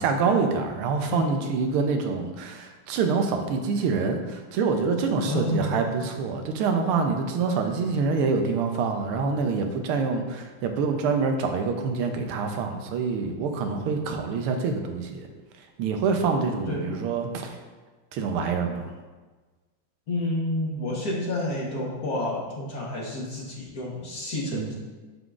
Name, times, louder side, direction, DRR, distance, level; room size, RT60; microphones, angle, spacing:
voice 1, 0.0-15.3 15.8-17.6 18.1-18.9 24.5-24.7, right 4 dB, 85° right, 5 dB, 1.6 m, -26 dB
voice 2, 5.2-6.1 16.7-17.0 20.1-24.7, left 1 dB, 50° left, -4 dB, 1.5 m, -30 dB
11.0 x 3.8 x 2.4 m, 1.3 s
omnidirectional pair, 2.3 m